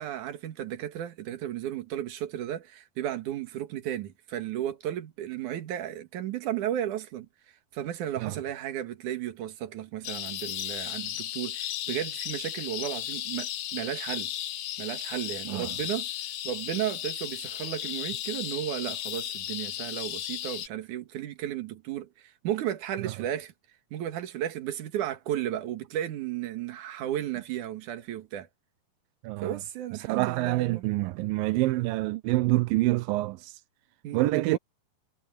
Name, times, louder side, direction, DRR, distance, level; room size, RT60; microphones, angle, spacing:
voice 1, 0.0-14.3 14.8-16.1 16.4-23.5 23.9-28.5 29.4-30.8 34.0-34.6, right 11 dB, 65° right, 2.9 m, -34 dB
sound 1, 10.0-20.7, left 12 dB, 90° left, 3.1 m, -35 dB
voice 2, 29.2-29.6 30.1-33.5 34.1-34.6, right 18 dB, 90° right, 2.4 m, -26 dB
omnidirectional pair, 4.0 m